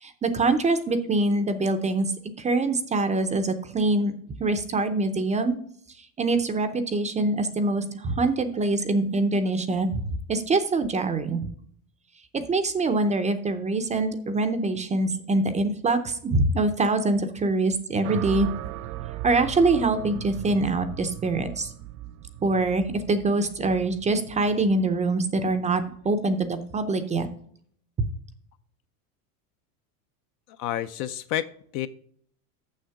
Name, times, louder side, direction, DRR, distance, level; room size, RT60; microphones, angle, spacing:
voice 1, 0.0-2.1 2.4-4.1 4.4-5.6 6.2-10.0 10.3-11.5 12.3-18.5 19.2-21.7 22.4-27.3, right 2 dB, 15° right, 0.5 m, -24 dB
sound 1, 18.0-26.3, right 13 dB, 75° right, 0.6 m, -38 dB
voice 2, 30.5-31.9, left 12 dB, 45° left, 0.4 m, -30 dB
6.9 x 6.5 x 5.7 m
supercardioid pair, 135°, 47 cm